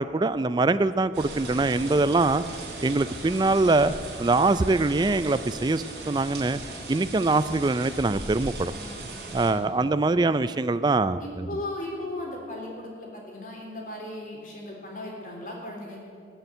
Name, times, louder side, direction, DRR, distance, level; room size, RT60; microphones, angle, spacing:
voice 1, 0.0-2.4 2.8-3.9 4.2-6.6 6.9-8.7 9.3-11.5, right 3 dB, 25° right, 13 dB, 0.3 m, -23 dB
sound 1, 1.1-9.5, right 2 dB, 70° right, 3.5 m, -38 dB
voice 2, 8.7-9.1 9.4-10.0 11.2-16.2, left 1 dB, 50° left, -1 dB, 3.5 m, -37 dB
19.0 x 7.0 x 8.0 m, 2.4 s
head